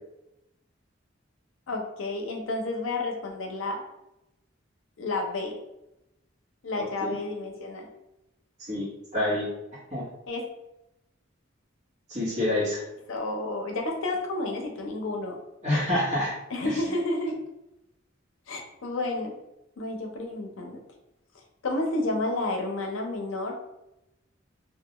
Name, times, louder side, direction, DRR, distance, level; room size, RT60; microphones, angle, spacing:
voice 1, 1.7-3.8 5.0-5.6 6.6-7.9 10.3-10.4 13.1-15.3 16.5-17.4 18.5-19.3 19.8-20.8 21.6-23.5, left 2 dB, 80° left, 2 dB, 0.6 m, -30 dB
voice 2, 6.8-7.1 8.7-8.9 9.1-9.5 9.9-10.1 12.1-12.8 15.6-16.3, left 1 dB, 35° right, -8 dB, 1.1 m, -27 dB
2.3 x 2.2 x 2.9 m, 0.89 s
head